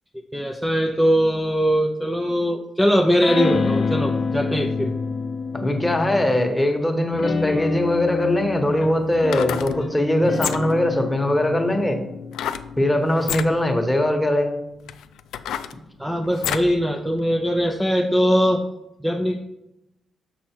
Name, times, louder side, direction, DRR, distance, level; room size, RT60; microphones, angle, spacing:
voice 1, 0.3-4.9 16.0-18.6 19.0-19.4, equal, 5° right, 2 dB, 0.6 m, -21 dB
sound 1, 3.2-6.6 7.1-13.9, left 5 dB, 45° left, 0.6 m, -28 dB
voice 2, 5.5-12.0 12.8-14.6, left 1 dB, 10° left, 4 dB, 1.2 m, -21 dB
sound 2, 8.0-8.1 9.1-9.7 10.3-10.8 12.3-12.7 13.2-13.5 14.2-14.3 14.9-16.7 17.2-17.3, left 10 dB, 85° left, 0.3 m, -29 dB
6.3 x 5.8 x 4.4 m, 0.89 s
cardioid pair, 85°, 0 cm